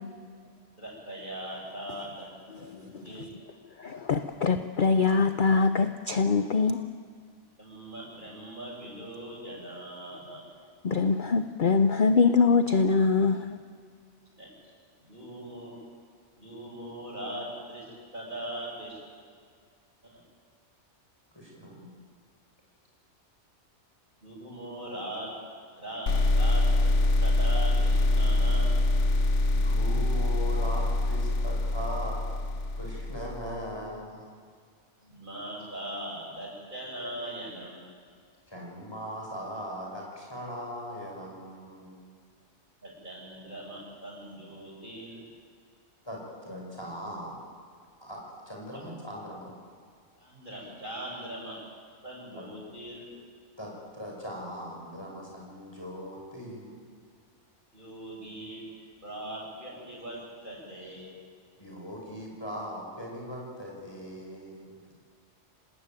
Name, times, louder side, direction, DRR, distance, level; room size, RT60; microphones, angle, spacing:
voice 1, 0.8-2.3 2.6-3.2 7.6-10.5 14.4-14.5 15.0-15.8 16.3-19.0 20.1-20.2 24.2-25.4 25.7-26.9 27.2-28.8 35.0-37.8 42.8-45.2 48.7-48.9 50.1-51.6 52.0-53.1 57.7-58.6 59.0-61.1, right 1 dB, 40° right, -3 dB, 8.3 m, -40 dB
voice 2, 3.8-6.8 10.8-13.4, left 4 dB, 45° left, 9 dB, 0.9 m, -23 dB
voice 3, 21.3-21.9 29.5-32.2 32.8-34.2 38.5-42.0 46.0-47.4 48.0-49.5 52.3-52.5 53.6-56.7 61.6-64.8, equal, 20° left, -2 dB, 6.4 m, -39 dB
sound 1, 26.1-33.6, left 2 dB, 75° left, 1.4 m, -25 dB
27.0 x 19.5 x 9.2 m, 2.1 s
omnidirectional pair, 1.2 m